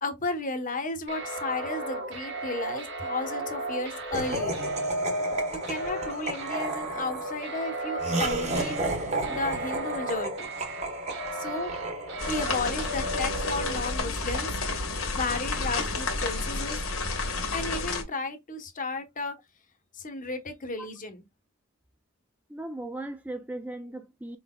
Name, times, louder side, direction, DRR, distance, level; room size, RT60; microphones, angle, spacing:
voice 1, 0.0-4.7 5.5-10.5 11.3-11.7 12.3-14.5 15.2-16.8 17.5-19.4 19.9-21.2, left 3 dB, 40° left, 1.0 m, -34 dB
sound 1, 1.1-14.0, right 1 dB, 55° right, 1.4 m, -34 dB
Laughter, 4.1-12.5, right 2 dB, 30° right, 1.2 m, -33 dB
sound 2, 12.2-18.0, left 3 dB, 70° left, 1.5 m, -30 dB
voice 2, 22.5-24.4, right 1 dB, 5° right, 0.4 m, -37 dB
4.8 x 3.9 x 2.2 m
head